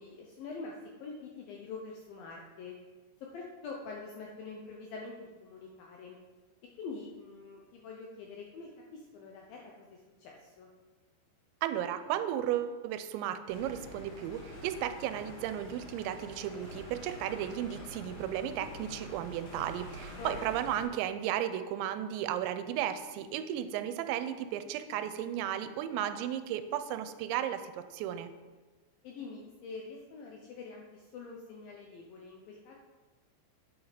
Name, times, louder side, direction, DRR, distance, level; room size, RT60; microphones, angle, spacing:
voice 1, 0.0-2.8 3.2-6.2 6.8-10.7 20.2-20.4 29.0-32.7, left 4 dB, 80° left, 0 dB, 2.1 m, -45 dB
voice 2, 11.6-28.3, right 11 dB, 90° right, 10 dB, 2.9 m, -34 dB
sound 1, 13.5-20.8, equal, 55° left, 3.6 m, -47 dB
9.4 x 7.2 x 5.0 m, 1.3 s
omnidirectional pair, 5.1 m